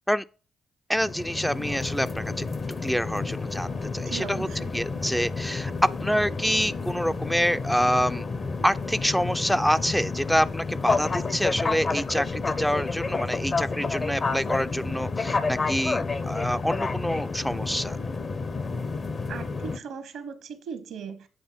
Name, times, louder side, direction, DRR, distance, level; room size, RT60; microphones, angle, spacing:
voice 1, 0.9-2.5 2.8-4.5 4.7-5.7 6.0-8.3 8.6-18.0, equal, ahead, 0.4 m, -27 dB
sound 1, 1.0-19.8, left 4 dB, 45° left, 0.8 m, -30 dB
sound 2, 1.5-19.5, left 4 dB, 70° left, 1.7 m, -54 dB
voice 2, 4.1-4.7 19.3-21.3, right 6 dB, 75° right, 1.0 m, -38 dB
8.1 x 3.9 x 5.5 m
hypercardioid pair, 40°, 0 cm